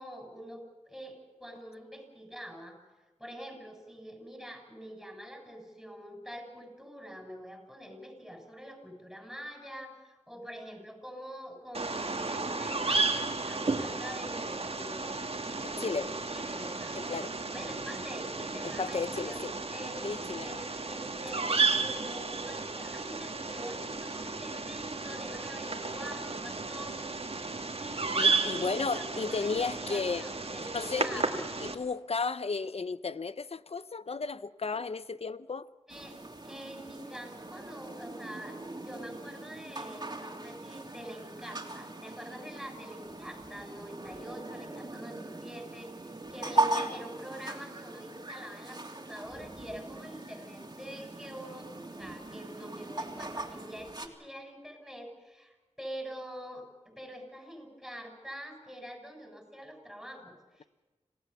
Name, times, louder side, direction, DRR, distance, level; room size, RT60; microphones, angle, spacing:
voice 1, 0.0-2.8 3.2-17.0 17.5-20.1 20.4-27.3 27.8-31.4 35.9-38.6 38.8-60.7, equal, ahead, 7.3 m, -45 dB
Bird vocalization bird call bird song, 11.7-31.7, right 4 dB, 55° right, 2.0 m, -33 dB
voice 2, 16.9-17.3 18.8-19.5 20.0-20.6 28.2-30.3 30.7-31.2 31.6-35.7 46.6-46.7, left 4 dB, 60° left, 0.8 m, -34 dB
sound 1, 35.9-54.1, right 2 dB, 35° right, 3.1 m, -39 dB
27.0 x 17.5 x 7.2 m
wide cardioid pair, 60°, 12 cm